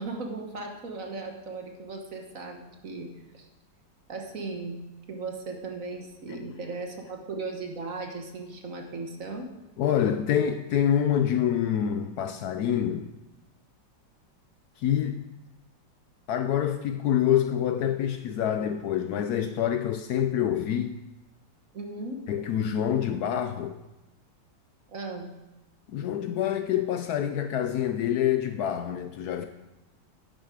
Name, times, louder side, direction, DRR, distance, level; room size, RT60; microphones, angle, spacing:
voice 1, 0.0-3.1 3.3-3.5 4.1-4.8 5.1-9.5 21.7-22.2 24.9-25.3, right 3 dB, 50° right, 1.5 m, -37 dB
voice 2, 9.8-13.1 14.8-15.2 16.3-20.9 22.3-23.7 25.9-29.5, left 9 dB, 70° left, 1.0 m, -26 dB
10.5 x 8.0 x 4.8 m
omnidirectional pair, 2.0 m